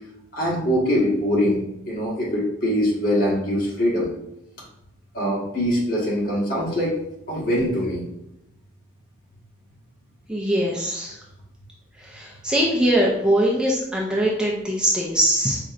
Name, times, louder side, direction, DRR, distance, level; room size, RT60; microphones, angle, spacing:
voice 1, 0.3-4.1 5.1-7.0 7.3-8.0, equal, 50° left, -5 dB, 1.5 m, -23 dB
voice 2, 10.3-11.2 12.0-15.6, right 1 dB, 5° right, -4 dB, 0.5 m, -22 dB
5.1 x 3.0 x 2.5 m, 0.84 s
head